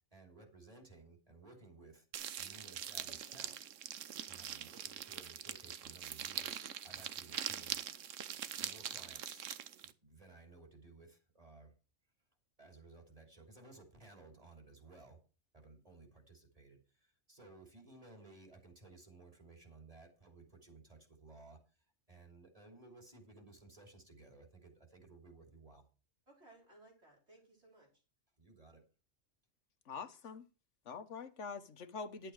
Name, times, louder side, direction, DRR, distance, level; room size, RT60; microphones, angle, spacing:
voice 1, 0.1-2.0 2.4-3.6 4.3-7.8 8.5-11.7 12.6-15.2 15.5-16.8 17.3-21.6 22.1-25.8 28.4-28.8, right 3 dB, 30° right, 2 dB, 3.2 m, -58 dB
sound 1, 2.1-9.9, right 9 dB, 90° right, 1.1 m, -43 dB
voice 2, 26.3-28.0, right 2 dB, 60° right, -2 dB, 5.4 m, -63 dB
voice 3, 29.9-30.4 30.9-32.3, left 5 dB, 75° left, 11 dB, 1.4 m, -45 dB
11.0 x 9.1 x 4.7 m, 0.34 s
omnidirectional pair, 1.3 m